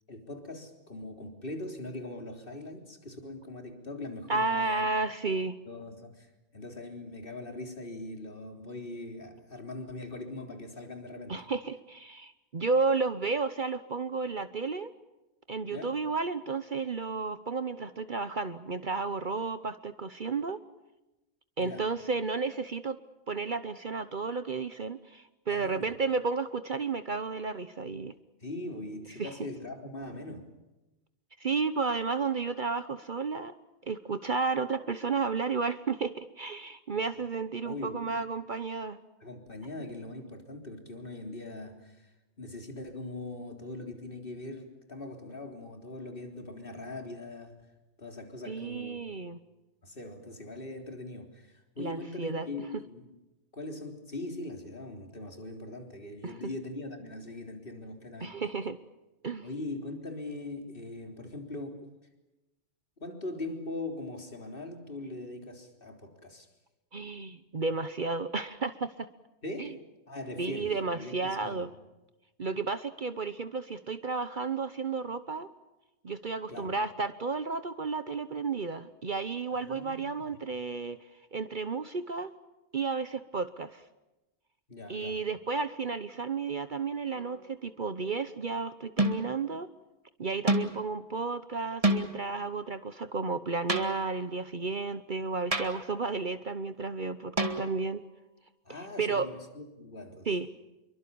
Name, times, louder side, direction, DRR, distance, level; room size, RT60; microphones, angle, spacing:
voice 1, 0.1-4.9 5.3-5.4 5.7-11.4 15.7-16.0 21.6-21.9 25.5-25.9 28.4-30.5 37.1-37.2 37.6-38.0 39.2-47.6 48.0-49.0 49.8-53.1 53.5-58.4 59.4-61.9 63.0-66.5 69.4-71.7 76.5-76.7 79.5-80.3 84.7-85.3 98.7-100.3, left 2 dB, 50° left, 4 dB, 3.9 m, -41 dB
voice 2, 4.3-5.6 11.3-14.9 15.5-20.6 21.6-23.0 23.3-28.1 29.2-29.3 31.4-33.5 33.9-39.0 48.5-49.4 51.8-52.5 56.2-56.4 58.2-58.8 59.2-59.5 66.9-69.1 69.6-69.7 70.4-71.7 72.4-75.5 76.0-81.0 81.3-82.3 82.7-83.8 84.9-89.7 90.2-98.0 98.7-99.3 100.3-100.5, right 4 dB, 45° right, 12 dB, 1.1 m, -32 dB
sound 1, 87.1-87.5 89.0-89.4 90.5-90.8 91.8-92.3 93.7-94.3 95.5-96.0 97.4-98.0, right 1 dB, 30° right, 2.2 m, -29 dB
28.0 x 23.5 x 7.0 m, 1.0 s
omnidirectional pair, 1.2 m